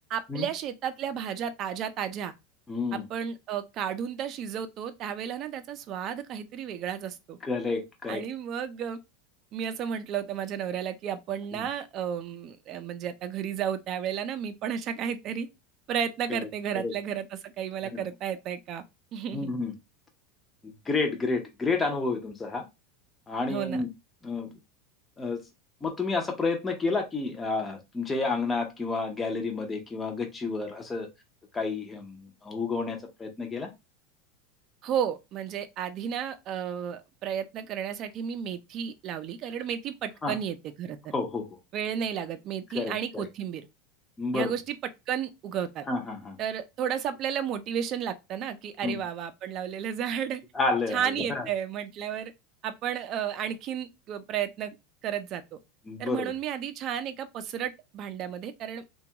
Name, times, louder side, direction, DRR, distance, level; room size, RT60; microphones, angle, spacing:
voice 1, 0.1-2.3 2.9-7.4 8.1-9.0 9.5-15.5 15.9-18.8 19.1-19.5 23.5-23.8 34.8-41.0 41.7-43.6 44.3-44.8 45.1-45.9 46.4-50.4 50.9-52.3 52.6-54.8 55.0-55.4 56.0-58.9, right 8 dB, 40° right, 0.4 m, -33 dB
voice 2, 2.7-3.0 7.4-8.2 11.5-11.7 16.3-16.5 16.7-16.9 17.8-18.0 19.3-19.7 20.6-22.7 23.3-23.9 24.2-24.5 25.2-25.4 25.8-31.1 31.5-33.7 40.2-40.3 41.1-41.5 42.7-43.3 44.2-44.5 45.9-46.4 48.8-49.0 50.5-51.5 55.9-56.3, left 3 dB, 15° left, 0.5 m, -30 dB
2.9 x 2.2 x 2.8 m
supercardioid pair, 150°, 0 cm